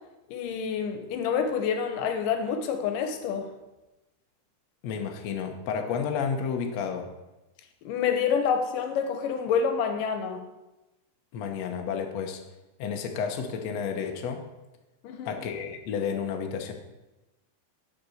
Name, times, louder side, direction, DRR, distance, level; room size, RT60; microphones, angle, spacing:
voice 1, 0.3-3.5 7.8-10.4 15.0-15.4, left 6 dB, 85° left, 6 dB, 2.6 m, -27 dB
voice 2, 4.8-7.1 11.3-12.4 12.8-14.4 15.3-16.7, left 6 dB, 65° left, 4 dB, 2.0 m, -31 dB
11.0 x 5.3 x 7.0 m, 1.0 s
omnidirectional pair, 3.7 m